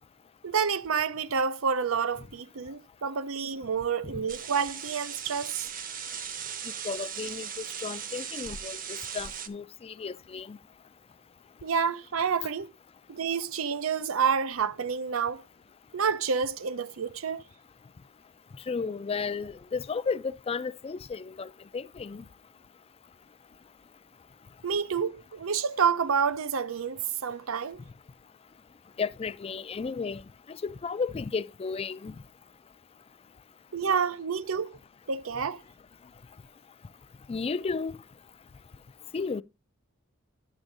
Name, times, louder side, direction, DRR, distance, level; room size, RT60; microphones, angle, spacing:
voice 1, 0.4-5.7 11.6-12.7 13.1-15.4 15.9-17.4 24.6-27.8 33.7-34.8 35.1-35.6, right 6 dB, 85° right, 0.6 m, -29 dB
sound 1, 4.3-9.5, right 7 dB, 45° right, 0.9 m, -38 dB
voice 2, 6.8-10.6 18.7-22.3 29.0-30.2 30.5-32.2 37.3-38.0 39.1-39.4, left 5 dB, 30° left, 0.4 m, -33 dB
10.0 x 7.0 x 2.6 m
head